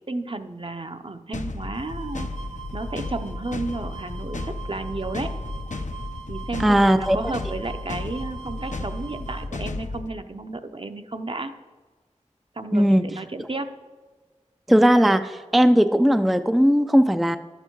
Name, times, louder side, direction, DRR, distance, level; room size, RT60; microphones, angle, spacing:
voice 1, 0.1-2.3 2.7-5.3 6.3-11.5 12.6-13.7, right 2 dB, 45° right, 7 dB, 0.6 m, -32 dB
sound 1, 1.3-10.1, left 3 dB, 75° left, 0.6 m, -33 dB
sound 2, 1.8-9.5, right 8 dB, 60° right, 1.2 m, -42 dB
voice 2, 6.6-7.3 12.7-13.0 14.7-17.4, equal, ahead, 9 dB, 0.3 m, -18 dB
11.5 x 6.7 x 4.6 m, 1.4 s
wide cardioid pair, 45°, 13 cm